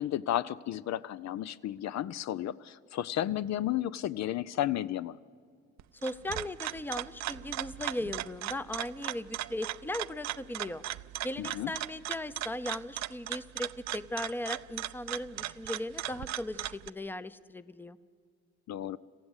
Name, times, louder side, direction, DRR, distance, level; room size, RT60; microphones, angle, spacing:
voice 1, 0.0-5.2 11.4-11.7 18.7-19.0, left 12 dB, 65° left, 16 dB, 0.5 m, -33 dB
sound 1, 5.8-16.9, right 14 dB, 65° right, 0.5 m, -38 dB
voice 2, 5.9-10.8 11.2-18.0, left 1 dB, 5° left, 14 dB, 0.6 m, -38 dB
27.0 x 15.0 x 8.1 m, 2.2 s
cardioid pair, 90°, 30 cm